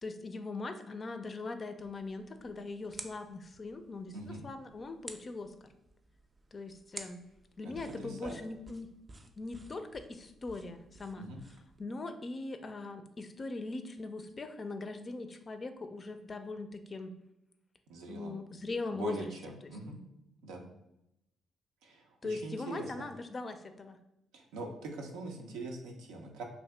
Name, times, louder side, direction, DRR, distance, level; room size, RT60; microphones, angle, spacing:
voice 1, 0.0-5.5 6.5-7.2 7.6-8.9 9.4-11.3 11.8-17.1 18.0-19.3 19.6-19.8 22.2-24.0, left 3 dB, 40° left, 8 dB, 0.4 m, -40 dB
sound 1, 1.8-11.8, right 2 dB, 35° right, 0.4 m, -53 dB
voice 2, 4.1-4.4 7.6-8.4 11.2-11.4 17.9-18.4 18.9-20.0 20.4-20.7 21.8-22.9 24.3-26.4, right 2 dB, 85° right, 2 dB, 0.5 m, -43 dB
2.7 x 2.5 x 3.3 m, 0.85 s
hypercardioid pair, 50°, 0 cm